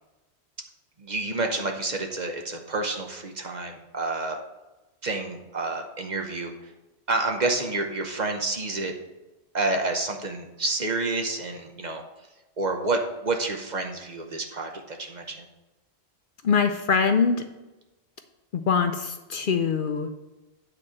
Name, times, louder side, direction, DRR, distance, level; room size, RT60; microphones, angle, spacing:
voice 1, 1.0-4.4 5.0-6.7 7.1-8.9 9.5-12.0 12.6-15.5, right 2 dB, 45° right, 3 dB, 0.9 m, -29 dB
voice 2, 16.4-17.4 18.5-20.1, left 5 dB, 55° left, 7 dB, 0.7 m, -23 dB
8.9 x 4.3 x 6.3 m, 1.0 s
omnidirectional pair, 1.1 m